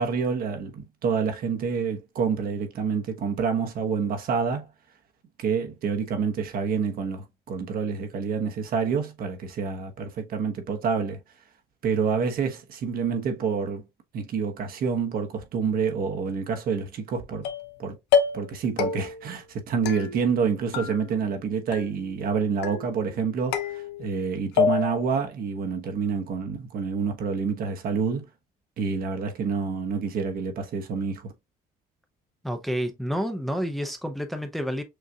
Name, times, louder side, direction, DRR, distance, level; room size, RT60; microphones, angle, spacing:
voice 1, 0.0-4.7 5.4-11.2 11.8-13.8 14.1-17.5 17.8-18.0 18.3-28.3 28.8-31.3, right 5 dB, 60° right, 1.1 m, -28 dB
sound 1, 17.4-17.8 18.1-18.5 18.8-19.3 19.9-20.5 20.7-21.4 21.7-22.2 22.6-23.1 23.5-24.2 24.6-25.1, left 6 dB, 85° left, 0.8 m, -27 dB
voice 2, 32.4-34.8, equal, ahead, 0.7 m, -29 dB
6.4 x 2.5 x 2.7 m
cardioid pair, 110°, 17 cm